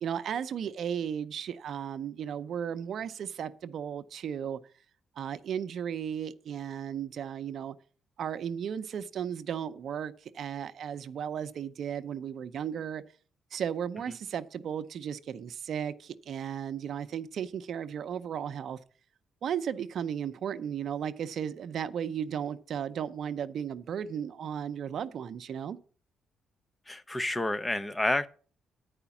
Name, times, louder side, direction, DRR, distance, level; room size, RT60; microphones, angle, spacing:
voice 1, 0.0-4.6 5.2-7.8 8.2-13.0 13.5-18.8 19.4-25.8, right 8 dB, 65° right, 0.6 m, -35 dB
voice 2, 26.9-28.3, left 2 dB, 15° left, 0.6 m, -29 dB
9.8 x 5.0 x 7.0 m
cardioid pair, 90°, 0 cm